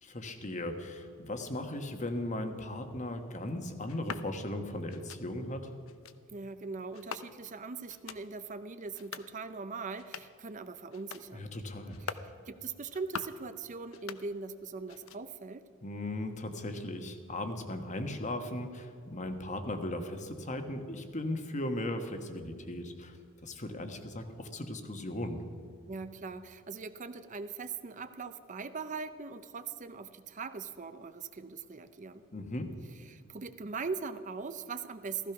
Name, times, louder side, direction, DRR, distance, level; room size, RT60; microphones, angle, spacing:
voice 1, 0.0-5.7 11.3-12.1 15.8-23.2 23.4-25.4 32.3-32.7, left 1 dB, 35° left, 7 dB, 1.3 m, -37 dB
sound 1, 3.9-4.3 4.9-5.2 5.9-6.2 6.9-7.6 7.9-8.2 8.9-9.3 9.9-10.4 10.9-11.3 11.9-12.3 12.9-13.4 13.9-14.6 14.9-15.4, left 6 dB, 75° left, 0.7 m, -44 dB
voice 2, 6.3-11.5 12.0-15.7 25.9-32.2 33.1-35.3, right 4 dB, 35° right, 11 dB, 0.6 m, -41 dB
15.5 x 15.0 x 5.9 m, 2.4 s
head